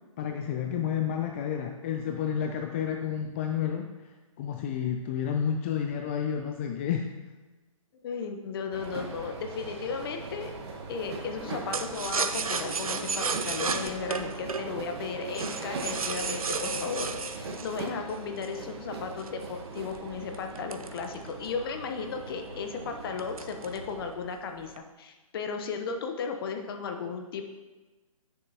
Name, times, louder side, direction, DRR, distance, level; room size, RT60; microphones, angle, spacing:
voice 1, 0.2-4.1 4.4-7.1, left 8 dB, 20° left, 3 dB, 0.3 m, -30 dB
voice 2, 8.0-10.5 10.9-27.4, left 5 dB, 40° left, 5 dB, 0.9 m, -35 dB
sound 1, 8.7-24.1, right 3 dB, 45° right, 1.2 m, -40 dB
sound 2, 11.7-18.6 19.2-21.6 22.0-22.1 22.4-22.7 23.2-23.9 24.2-24.8, right 4 dB, 80° right, 0.7 m, -33 dB
10.5 x 6.7 x 2.9 m, 1.2 s
figure-of-eight pair, 135°, 18 cm